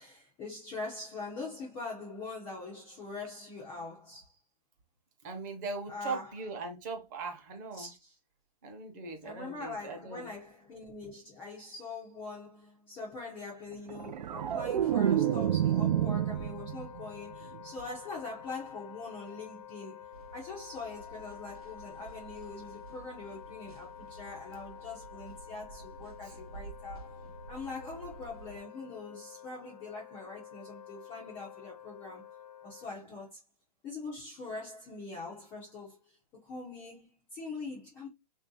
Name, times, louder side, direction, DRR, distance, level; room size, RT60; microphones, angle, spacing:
voice 1, 0.0-4.4 5.9-6.3 7.7-8.2 9.2-27.2 27.5-32.2 32.6-33.4 33.8-36.2 36.4-38.1, left 3 dB, 10° left, 0.4 m, -43 dB
voice 2, 5.2-7.9 8.6-10.3 26.2-26.3, right 3 dB, 25° right, 0.9 m, -39 dB
sound 1, 13.9-17.1 17.4-17.8, right 10 dB, 85° right, 0.4 m, -29 dB
Wind instrument woodwind instrument, 14.3-32.9, left 9 dB, 85° left, 0.8 m, -50 dB
sound 2, 20.1-28.6, right 4 dB, 60° right, 0.9 m, -51 dB
3.3 x 2.7 x 3.7 m
hypercardioid pair, 175°, 21 cm